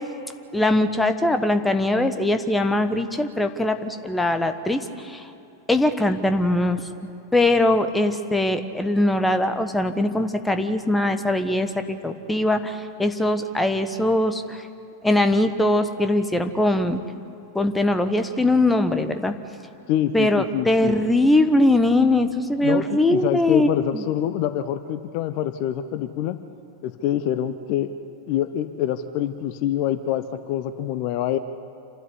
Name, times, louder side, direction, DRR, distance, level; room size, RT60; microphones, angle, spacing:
voice 1, 0.5-5.3 5.7-6.8 7.3-14.7 15.0-17.0 17.5-19.3 20.1-24.0, left 1 dB, 5° left, 8 dB, 1.3 m, -21 dB
voice 2, 19.9-21.0 22.6-26.4 26.8-27.9 28.3-31.4, left 11 dB, 45° left, 11 dB, 0.8 m, -25 dB
27.5 x 12.5 x 9.9 m, 2.7 s
figure-of-eight pair, 90°, 0 cm